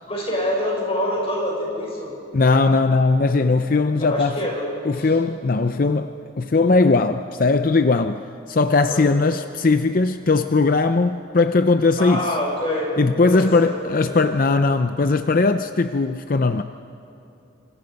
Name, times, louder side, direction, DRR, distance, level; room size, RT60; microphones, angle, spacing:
voice 1, 0.1-2.1 4.0-4.6 4.9-5.1 8.9-9.1 12.0-14.2, left 1 dB, 30° left, 6.6 m, -26 dB
voice 2, 2.3-4.4 4.9-12.3 13.0-16.6, left 3 dB, 45° left, 0.5 m, -19 dB
27.5 x 26.0 x 5.3 m
head